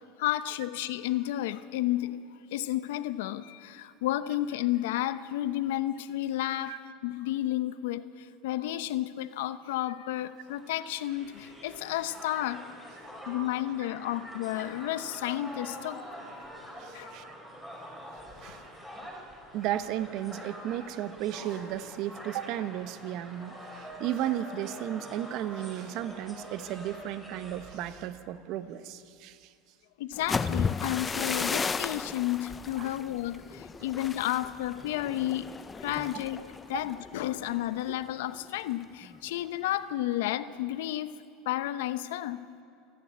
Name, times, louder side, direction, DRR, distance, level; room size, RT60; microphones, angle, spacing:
voice 1, 0.2-2.2 2.5-12.6 13.3-16.0 16.9-17.1 30.0-35.4 35.8-41.1 41.5-42.4, left 14 dB, 85° left, 13 dB, 0.9 m, -32 dB
Crowd, 10.5-27.8, equal, 5° right, 4.7 m, -45 dB
voice 2, 16.8-17.3 18.4-18.6 19.5-29.5 32.8-33.0 36.0-36.1 36.7-36.9 37.9-38.0, right 12 dB, 55° right, 11 dB, 1.1 m, -34 dB
sound 1, 30.1-38.0 38.3-38.7 39.0-39.4, left 5 dB, 15° left, 0.5 m, -34 dB
28.5 x 11.5 x 9.6 m, 2.4 s
supercardioid pair, 145°, 0 cm